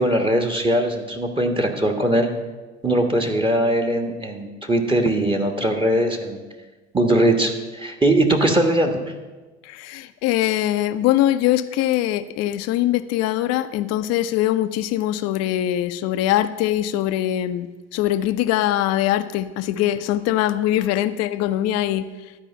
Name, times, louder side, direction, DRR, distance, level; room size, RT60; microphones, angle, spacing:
voice 1, 0.0-2.3 2.8-6.4 6.9-9.0, right 1 dB, 15° right, 4 dB, 1.3 m, -20 dB
voice 2, 9.6-22.1, left 13 dB, 55° left, 12 dB, 0.6 m, -22 dB
12.0 x 4.9 x 7.0 m, 1.3 s
hypercardioid pair, 60°, 31 cm